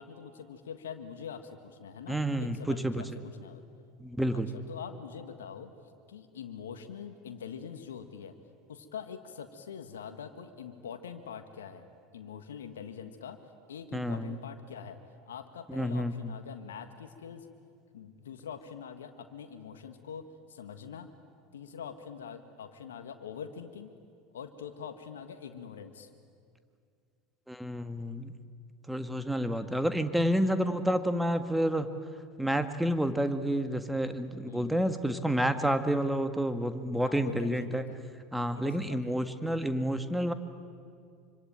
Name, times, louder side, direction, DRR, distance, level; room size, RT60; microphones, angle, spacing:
voice 1, 0.0-3.6 4.3-5.7 6.1-8.3 8.7-11.9 12.1-13.4 13.7-15.0 15.3-17.5 17.9-21.1 21.5-23.9 24.3-26.1 34.4-34.9 37.0-38.0 38.5-39.3, left 7 dB, 75° left, 7 dB, 1.6 m, -44 dB
voice 2, 2.1-3.0 4.0-4.5 13.9-14.4 15.7-16.3 27.5-28.3 28.9-31.9 32.4-37.8 38.3-40.3, equal, 5° right, 9 dB, 1.8 m, -29 dB
26.0 x 25.0 x 9.0 m, 2.3 s
hypercardioid pair, 75°, 0 cm